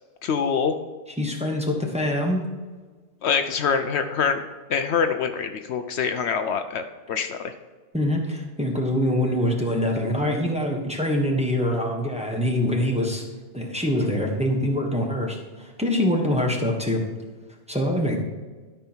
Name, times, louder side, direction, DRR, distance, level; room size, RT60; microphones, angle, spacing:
voice 1, 0.2-0.8 3.2-4.4 4.7-7.5, left 6 dB, 70° left, 8 dB, 0.9 m, -25 dB
voice 2, 1.2-2.4 7.9-13.2 13.5-17.0 17.7-18.2, left 1 dB, 5° right, 0 dB, 1.4 m, -24 dB
12.5 x 5.7 x 4.5 m, 1.4 s
omnidirectional pair, 1.2 m